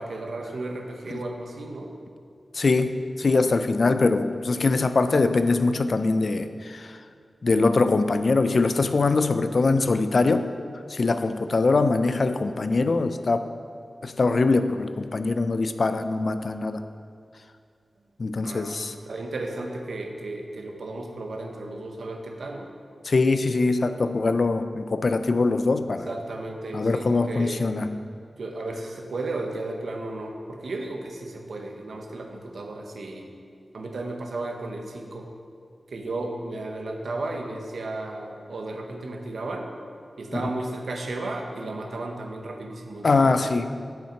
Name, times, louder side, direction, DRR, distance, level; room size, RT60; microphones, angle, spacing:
voice 1, 0.0-1.9 18.4-22.7 25.9-27.7 28.4-33.4 33.7-35.3 35.9-39.7 40.2-43.6, right 2 dB, 90° right, 3 dB, 0.8 m, -34 dB
voice 2, 2.5-7.0 7.4-10.5 10.9-13.5 14.0-16.8 18.2-18.9 23.0-26.1 26.7-28.0 40.3-40.4 43.0-43.8, left 3 dB, 55° left, 10 dB, 0.3 m, -23 dB
7.4 x 5.8 x 4.4 m, 2.2 s
wide cardioid pair, 110°, 0 cm